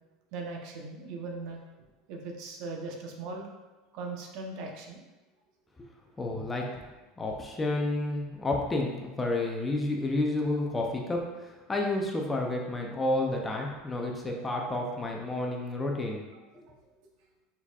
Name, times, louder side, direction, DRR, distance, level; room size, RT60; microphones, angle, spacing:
voice 1, 0.3-1.6 2.1-3.5 3.9-5.0 16.7-16.8, right 3 dB, 50° right, 1 dB, 0.7 m, -39 dB
voice 2, 6.2-6.6 7.2-16.2, left 2 dB, 10° left, 0 dB, 0.4 m, -30 dB
4.7 x 4.1 x 2.3 m, 1.2 s
cardioid pair, 165°, 0 cm